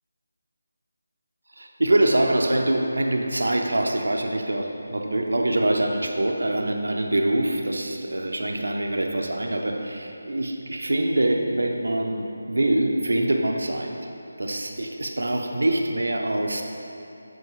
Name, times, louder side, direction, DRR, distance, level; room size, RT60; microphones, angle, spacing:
voice 1, 1.6-13.9 14.4-16.6, right 1 dB, 75° right, 2 dB, 0.6 m, -24 dB
8.3 x 4.5 x 3.1 m, 2.8 s
figure-of-eight pair, 160°, 0 cm